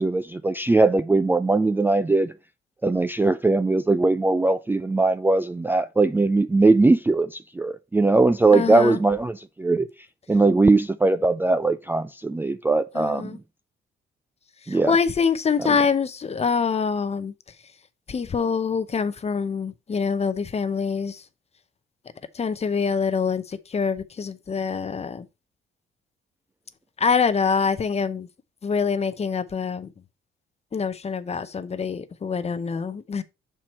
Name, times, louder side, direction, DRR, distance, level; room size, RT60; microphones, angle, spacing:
voice 1, 0.0-2.3 2.8-7.3 7.6-9.9 10.3-13.3 14.7-15.0 15.6-15.7, right 3 dB, 10° right, 0.3 m, -20 dB
voice 2, 8.5-9.0 12.9-13.4 14.7-17.3 18.1-21.2 22.3-25.3 27.0-28.3 28.6-29.9 30.7-33.2, left 5 dB, 30° left, 0.7 m, -25 dB
5.9 x 4.5 x 4.1 m
cardioid pair, 90°, 20 cm